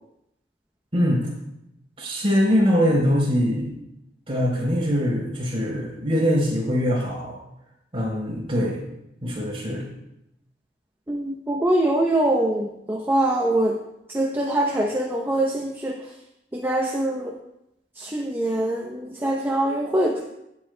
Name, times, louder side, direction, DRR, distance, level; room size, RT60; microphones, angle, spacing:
voice 1, 0.9-1.2 2.0-3.8 4.3-7.4 7.9-8.8 9.2-9.9, equal, 30° right, -4 dB, 3.6 m, -22 dB
voice 2, 11.1-13.8 14.1-16.0 16.5-17.4 18.0-20.2, right 1 dB, 10° right, 0 dB, 0.7 m, -23 dB
16.0 x 8.2 x 2.2 m, 0.82 s
head